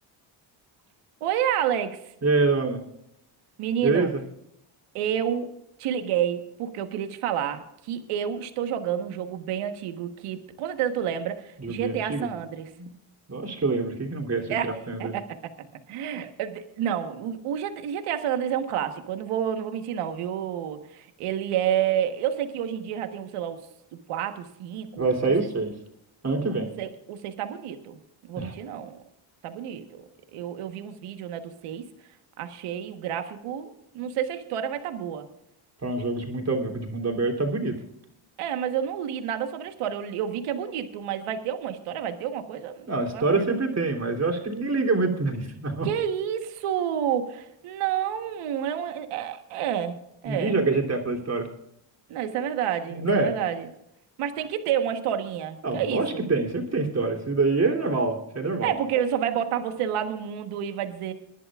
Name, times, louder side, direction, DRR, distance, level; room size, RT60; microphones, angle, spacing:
voice 1, 1.2-1.9 3.6-4.1 4.9-5.5 5.8-12.7 14.5-15.3 15.9-23.6 23.9-25.1 26.4-28.0 28.3-29.0 29.4-30.0 30.3-31.8 32.4-35.3 38.4-43.5 45.8-50.6 52.1-53.7 54.2-56.2 58.6-61.1, right 9 dB, 90° right, 7 dB, 1.4 m, -29 dB
voice 2, 2.2-2.8 3.8-4.1 11.6-12.3 12.8-12.9 13.3-15.1 25.0-25.7 26.2-26.7 28.4-28.5 35.8-37.8 42.9-45.9 50.2-51.5 52.9-53.3 55.6-58.7, right 3 dB, 30° right, 1 dB, 3.3 m, -25 dB
24.5 x 11.0 x 2.5 m, 0.79 s
cardioid pair, 90°, 50 cm